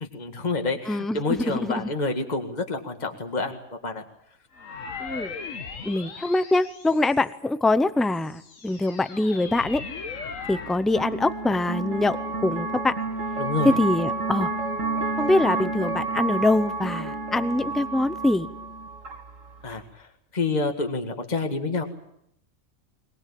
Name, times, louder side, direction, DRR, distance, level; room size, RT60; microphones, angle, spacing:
voice 1, 0.0-4.0 13.4-13.7 19.6-21.8, left 3 dB, 30° left, 5 dB, 2.0 m, -28 dB
voice 2, 0.9-1.9 5.0-5.3 5.8-9.8 10.5-12.2 12.4-12.9 13.6-14.5 15.2-18.5, left 2 dB, ahead, 13 dB, 0.6 m, -24 dB
sound 1, 4.5-7.5 8.0-10.9, left 5 dB, 70° left, 1.9 m, -38 dB
sound 2, 9.5-19.8, right 3 dB, 70° right, 2.5 m, -30 dB
22.5 x 19.5 x 8.8 m, 0.75 s
omnidirectional pair, 1.4 m